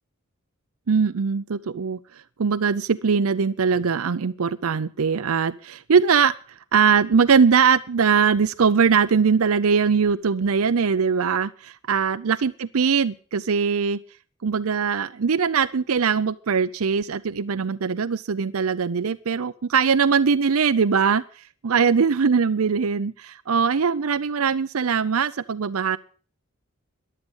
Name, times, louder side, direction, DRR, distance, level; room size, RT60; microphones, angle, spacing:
voice 1, 0.9-2.0 2.4-6.3 6.7-14.0 14.4-21.2 21.6-26.0, right 6 dB, 80° right, 11 dB, 0.6 m, -21 dB
14.5 x 11.0 x 5.4 m, 0.42 s
head